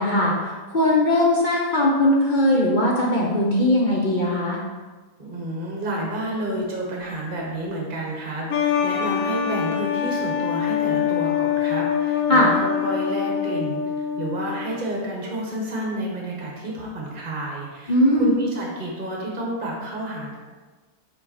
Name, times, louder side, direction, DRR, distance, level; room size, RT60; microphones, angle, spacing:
voice 1, 0.0-4.6 12.3-12.5 17.9-18.3, left 1 dB, 40° left, -3 dB, 0.7 m, -19 dB
voice 2, 5.2-20.4, right 1 dB, 35° right, -2 dB, 1.2 m, -30 dB
sound 1, 8.5-14.8, left 8 dB, 65° left, 0.9 m, -24 dB
5.4 x 4.5 x 4.3 m, 1.3 s
omnidirectional pair, 1.8 m